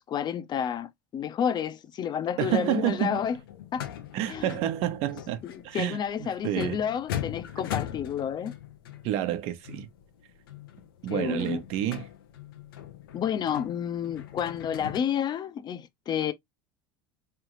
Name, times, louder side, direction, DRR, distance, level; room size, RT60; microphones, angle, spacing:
voice 1, 0.0-3.4 3.7-3.9 4.3-4.5 5.4-8.5 11.1-11.6 13.1-16.3, left 8 dB, 40° left, 0.7 m, -30 dB
voice 2, 2.4-3.2 4.1-5.4 5.6-6.8 9.0-9.9 11.0-12.1, right 12 dB, 60° right, 0.9 m, -29 dB
sound 1, 2.8-15.0, left 11 dB, 90° left, 0.8 m, -40 dB
3.6 x 3.4 x 3.1 m
supercardioid pair, 100°, 12 cm